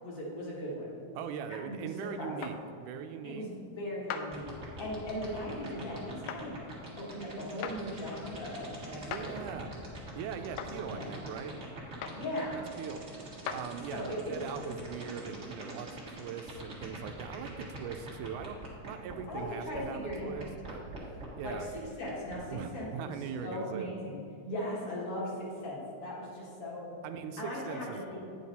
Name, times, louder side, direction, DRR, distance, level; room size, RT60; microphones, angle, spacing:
voice 1, 0.0-1.0 1.7-2.5 3.2-6.6 7.0-9.6 10.8-11.1 12.1-12.7 13.9-14.7 19.3-20.4 21.4-23.1 23.4-27.0 27.4-28.2, left 1 dB, 55° left, -5 dB, 2.5 m, -39 dB
voice 2, 1.2-3.5 9.0-9.7 10.1-11.6 12.5-13.0 13.5-20.8 21.4-21.7 22.5-23.9 27.0-28.0, right 7 dB, 85° right, 8 dB, 2.1 m, -41 dB
sound 1, 2.4-2.6 4.1-4.3 6.3-6.4 7.6-7.8 9.1-9.3 10.6-10.7 12.0-12.2 13.5-13.6, left 8 dB, 90° left, 1.4 m, -37 dB
sound 2, 4.3-19.5 19.7-19.8 20.1-22.4, right 2 dB, 35° right, 1.4 m, -44 dB
9.1 x 6.5 x 4.1 m, 2.7 s
omnidirectional pair, 3.5 m